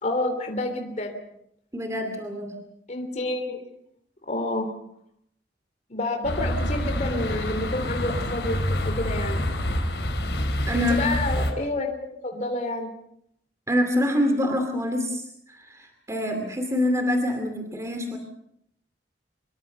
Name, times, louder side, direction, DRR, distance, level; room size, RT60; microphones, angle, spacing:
voice 1, 0.0-1.2 2.9-3.6 4.3-4.7 5.9-9.4 10.7-12.9, left 2 dB, 45° left, 4 dB, 3.2 m, -29 dB
voice 2, 1.7-2.5 10.7-11.0 13.7-18.2, left 1 dB, 20° right, 5 dB, 2.5 m, -26 dB
sound 1, 6.2-11.5, left 1 dB, 75° left, 4.2 m, -27 dB
26.0 x 22.5 x 5.6 m, 0.73 s
head